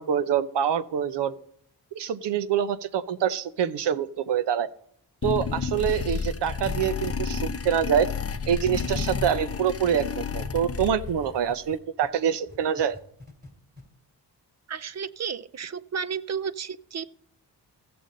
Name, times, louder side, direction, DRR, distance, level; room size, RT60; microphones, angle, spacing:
voice 1, 0.0-1.3 1.9-4.7 5.2-8.1 8.5-13.0, right 8 dB, 80° right, 14 dB, 0.7 m, -25 dB
sound 1, 5.2-11.3, left 5 dB, 35° left, 0.7 m, -31 dB
sound 2, 7.2-12.1 12.5-13.5 13.8-13.9, equal, 25° right, 3.2 m, -46 dB
voice 2, 14.7-17.1, right 7 dB, 40° right, 16 dB, 0.5 m, -33 dB
16.0 x 6.9 x 3.9 m, 0.70 s
wide cardioid pair, 100°, 41 cm